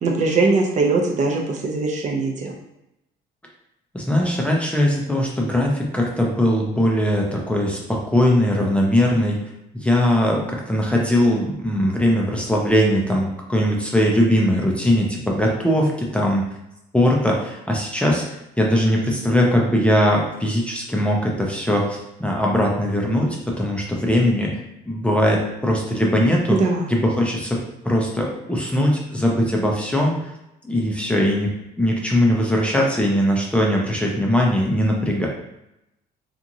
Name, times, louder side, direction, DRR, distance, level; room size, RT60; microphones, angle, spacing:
voice 1, 0.0-2.5 26.5-26.9, right 3 dB, 45° right, 1 dB, 0.6 m, -21 dB
voice 2, 3.9-9.4 9.7-16.5 16.9-18.2 18.6-26.6 26.9-30.3 30.6-35.3, equal, 5° left, -1 dB, 0.5 m, -20 dB
2.9 x 2.4 x 2.6 m, 0.85 s
cardioid pair, 110°, 17 cm